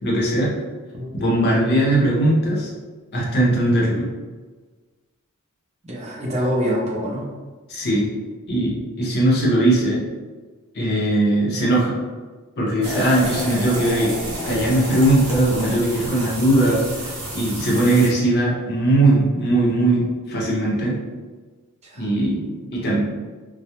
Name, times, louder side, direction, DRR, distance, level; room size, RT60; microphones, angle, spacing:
voice 1, 0.0-0.5 1.1-2.7 3.1-4.1 7.7-8.1 8.5-10.0 10.7-11.9 12.6-20.9 22.0-23.0, right 1 dB, 50° left, -4 dB, 0.6 m, -19 dB
voice 2, 5.8-7.3 21.8-22.1, equal, 30° right, -3 dB, 0.5 m, -25 dB
sound 1, 12.8-18.1, right 1 dB, 80° right, 0.8 m, -30 dB
2.2 x 2.0 x 2.8 m, 1.3 s
head